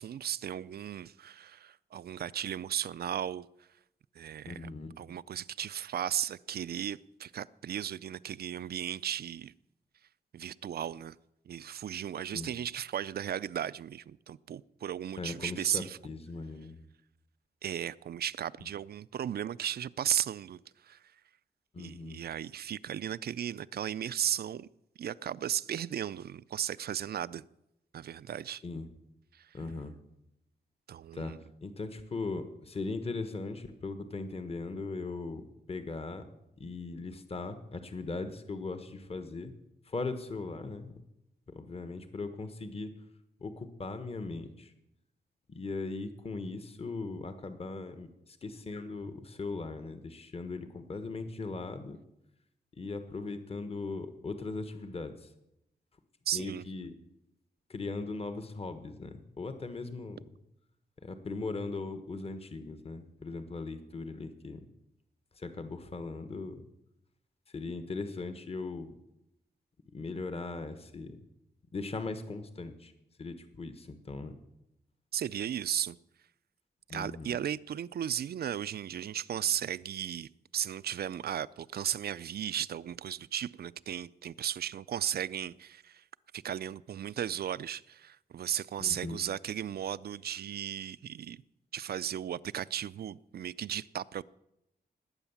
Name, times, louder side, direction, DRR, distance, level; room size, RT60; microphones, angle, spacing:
voice 1, 0.0-3.5 4.2-4.6 5.0-9.5 10.3-11.2 11.5-16.0 17.6-21.0 21.8-24.7 25.0-27.4 27.9-28.6 29.3-29.5 30.9-31.4 56.3-56.6 75.1-76.0 76.9-86.0 86.3-91.4 91.7-94.2, right 10 dB, 70° right, 0.5 m, -35 dB
voice 2, 4.4-5.0 12.3-12.5 15.2-16.8 21.7-22.2 28.6-28.9 29.5-30.0 31.1-31.4 31.6-36.3 36.6-39.5 39.8-40.9 41.5-43.0 43.4-44.7 45.5-52.0 52.8-55.3 56.3-56.9 57.7-60.2 61.0-64.7 65.3-66.7 67.5-69.0 69.9-71.2 71.7-72.9 73.2-74.3 76.9-77.4 88.8-89.2, left 3 dB, 35° left, 1.4 m, -39 dB
19.5 x 8.9 x 7.2 m
wide cardioid pair, 130°, 17 cm